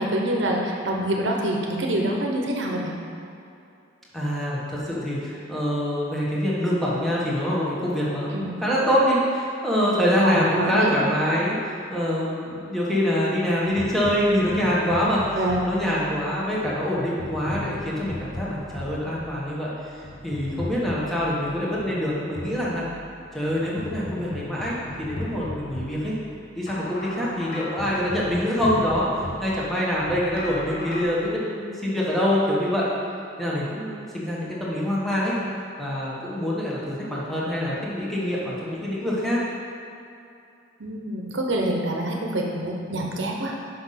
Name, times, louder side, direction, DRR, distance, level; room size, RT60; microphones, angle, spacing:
voice 1, 0.0-3.0 8.3-8.5 10.2-10.9 15.4-15.6 40.8-43.5, right 1 dB, 65° right, -1 dB, 0.9 m, -26 dB
voice 2, 4.1-15.4 15.6-22.8 23.3-26.1 26.5-29.1 29.4-32.9 33.4-35.3 35.8-39.4, equal, ahead, -7 dB, 1.3 m, -25 dB
sound 1, 13.8-31.0, left 1 dB, 50° left, 1.1 m, -38 dB
5.8 x 5.5 x 5.8 m, 2.6 s
head